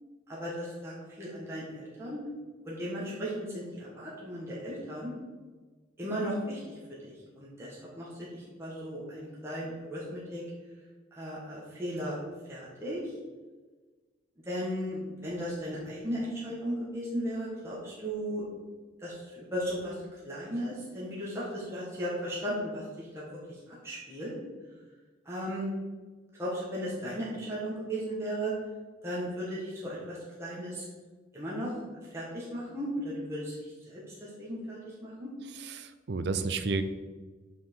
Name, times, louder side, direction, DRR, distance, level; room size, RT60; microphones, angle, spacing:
voice 1, 0.3-2.2 2.6-5.1 6.0-10.4 11.1-12.2 12.5-13.0 14.5-18.5 19.0-24.3 25.2-25.7 26.4-28.5 29.0-30.9 31.3-31.7 32.1-35.3, equal, 15° right, -7 dB, 1.5 m, -36 dB
voice 2, 35.6-36.8, right 4 dB, 60° right, 10 dB, 0.5 m, -31 dB
6.1 x 5.6 x 4.6 m, 1.3 s
head